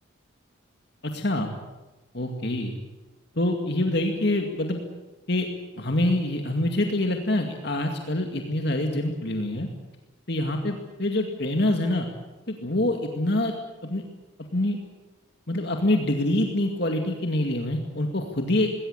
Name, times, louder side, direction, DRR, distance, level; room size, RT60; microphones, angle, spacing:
voice 1, 1.0-1.5 2.1-2.8 3.4-4.8 5.3-5.5 5.8-9.7 10.3-12.1 12.5-13.5 13.8-14.0 14.5-14.8 15.5-18.7, left 1 dB, 55° left, 3 dB, 2.3 m, -25 dB
20.5 x 18.0 x 9.9 m, 1.1 s
head